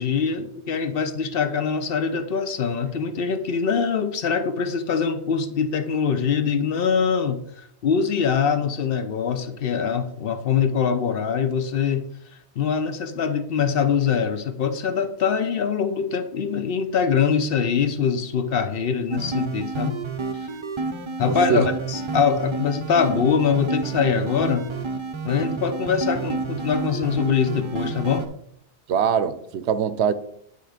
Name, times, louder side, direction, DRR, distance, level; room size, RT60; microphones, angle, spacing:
voice 1, 0.0-12.1 12.6-20.0 21.2-24.7 25.2-28.3, left 6 dB, 60° left, 0.8 m, -23 dB
sound 1, 19.1-28.3, right 4 dB, 40° right, 0.4 m, -30 dB
voice 2, 21.3-21.7 28.9-30.1, right 8 dB, 75° right, 0.8 m, -22 dB
9.6 x 3.4 x 4.9 m
omnidirectional pair, 1.1 m